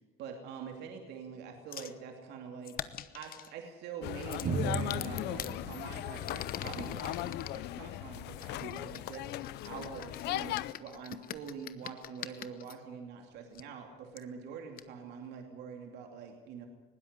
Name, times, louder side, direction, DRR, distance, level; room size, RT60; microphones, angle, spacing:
voice 1, 0.2-2.8 3.1-16.7, right 6 dB, 80° right, 3 dB, 2.7 m, -45 dB
sound 1, 1.7-2.0 2.6-3.5 4.2-5.5 6.1-7.6 8.4-12.7 13.5-13.6 14.2-14.3 14.8-14.9, left 11 dB, 60° left, 1.1 m, -43 dB
sound 2, 4.0-10.7, left 15 dB, 80° left, 0.7 m, -38 dB
Drum, 4.5-8.0, right 4 dB, 35° right, 1.9 m, -38 dB
20.5 x 16.5 x 9.5 m, 1.2 s
cardioid pair, 110°, 17 cm